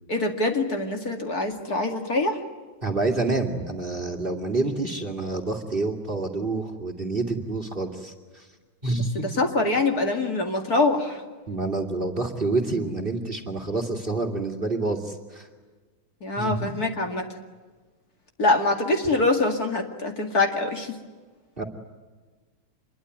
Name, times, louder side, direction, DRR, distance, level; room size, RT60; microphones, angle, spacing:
voice 1, 0.1-2.4 9.2-11.2 16.2-17.2 18.4-20.9, left 2 dB, 45° left, 4 dB, 2.7 m, -24 dB
voice 2, 2.8-8.5 8.8-9.2 11.5-15.5 16.4-16.8 21.6-21.7, right 2 dB, 25° right, 7 dB, 2.5 m, -28 dB
26.5 x 22.5 x 9.3 m, 1.4 s
omnidirectional pair, 2.3 m